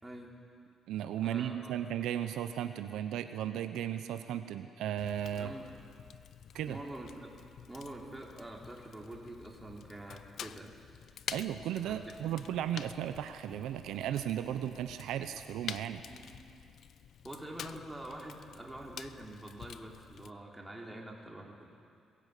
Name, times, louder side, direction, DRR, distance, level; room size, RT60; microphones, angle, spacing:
voice 1, 0.0-0.3 1.2-1.8 5.3-5.6 6.7-7.3 7.7-10.8 11.8-12.4 16.1-16.4 17.2-21.7, right 1 dB, 10° right, -1 dB, 3.5 m, -46 dB
voice 2, 0.9-5.5 6.5-6.8 11.3-16.0, right 10 dB, 85° right, 9 dB, 0.8 m, -35 dB
Fire, 5.0-20.3, left 8 dB, 65° left, 0.6 m, -49 dB
21.0 x 16.0 x 8.4 m, 2.3 s
cardioid pair, 90°, 0 cm